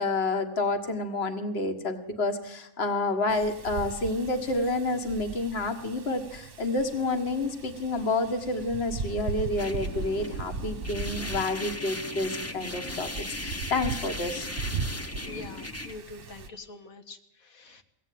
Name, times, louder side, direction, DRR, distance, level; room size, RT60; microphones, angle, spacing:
voice 1, 0.0-13.1 13.4-14.5, left 2 dB, 50° left, 7 dB, 1.8 m, -29 dB
Wind, 3.3-16.5, right 4 dB, 45° right, 1.1 m, -38 dB
sound 1, 9.6-15.9, left 2 dB, 15° left, 0.8 m, -37 dB
voice 2, 15.2-17.8, left 3 dB, 85° left, 7 dB, 2.0 m, -45 dB
22.5 x 17.0 x 9.3 m, 0.90 s
omnidirectional pair, 1.4 m